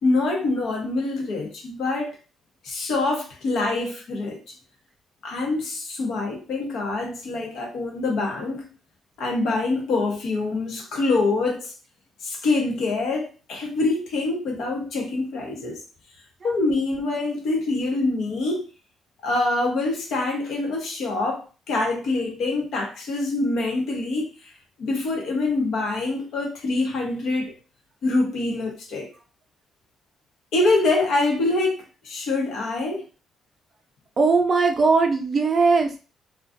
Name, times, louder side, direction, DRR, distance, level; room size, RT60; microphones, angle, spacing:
voice 1, 0.0-2.2 2.6-4.5 5.2-8.7 9.2-11.7 12.2-15.8 16.4-18.7 19.2-24.5 24.8-27.6 28.0-29.1 30.5-33.1, left 2 dB, 75° left, 0.8 m, -25 dB
voice 2, 34.2-36.0, right 4 dB, 45° right, 0.5 m, -19 dB
2.4 x 2.2 x 2.5 m
cardioid pair, 90°, 0 cm